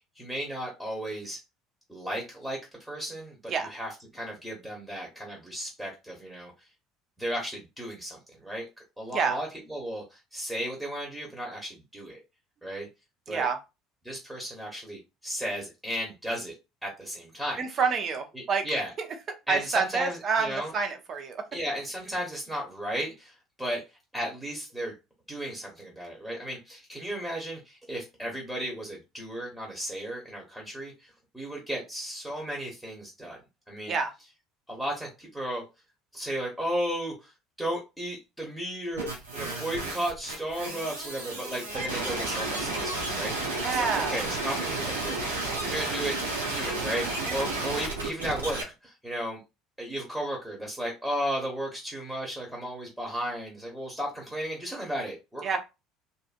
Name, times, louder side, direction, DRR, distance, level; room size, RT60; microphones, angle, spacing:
voice 1, 0.0-1.4 1.9-6.7 7.2-8.6 9.0-12.2 12.6-12.9 13.3-13.5 14.0-16.5 16.8-17.8 18.3-18.9 19.5-20.7 21.5-24.9 25.3-33.4 33.7-33.9 34.7-35.7 36.1-43.3 43.7-46.2 46.5-49.4 49.8-55.6, equal, 5° right, -2 dB, 1.1 m, -35 dB
voice 2, 17.6-18.6 19.5-21.4 33.9-34.1 43.6-44.1 47.3-47.5 55.4-55.6, right 5 dB, 45° right, 6 dB, 0.7 m, -28 dB
sound 1, 39.0-48.6, right 2 dB, 85° right, 0.7 m, -32 dB
2.6 x 2.5 x 2.5 m, 0.26 s
hypercardioid pair, 65°, 0 cm